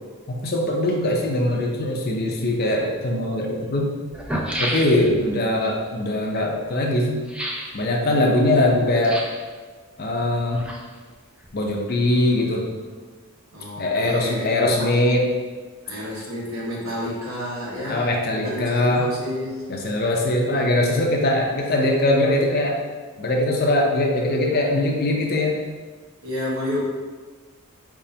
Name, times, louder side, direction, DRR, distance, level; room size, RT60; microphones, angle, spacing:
voice 1, 0.3-3.9 4.6-7.2 7.7-9.2 10.0-10.6 11.5-12.6 13.8-15.3 17.9-19.1 19.7-22.8 23.2-25.6, left 1 dB, 45° left, 0 dB, 0.6 m, -21 dB
sound 1, 2.8-2.9 3.7-3.8 4.1-5.3 7.3-7.8 8.9-9.5 10.3-11.1 11.4-11.5, equal, 5° right, 0.4 m, -30 dB
voice 2, 13.5-14.9 15.8-18.1 18.3-19.7 26.2-26.8, equal, 65° right, -5 dB, 1.3 m, -30 dB
5.1 x 3.6 x 2.8 m, 1.4 s
head